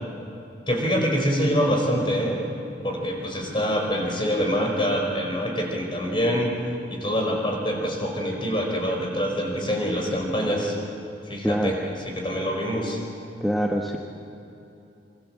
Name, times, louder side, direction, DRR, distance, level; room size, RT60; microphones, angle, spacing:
voice 1, 0.7-2.4 2.8-6.5 6.9-10.8 11.3-11.8 12.1-13.0, equal, 30° left, 1 dB, 5.3 m, -25 dB
voice 2, 13.4-14.0, equal, ahead, -1 dB, 1.3 m, -24 dB
26.0 x 25.0 x 7.6 m, 2.8 s
head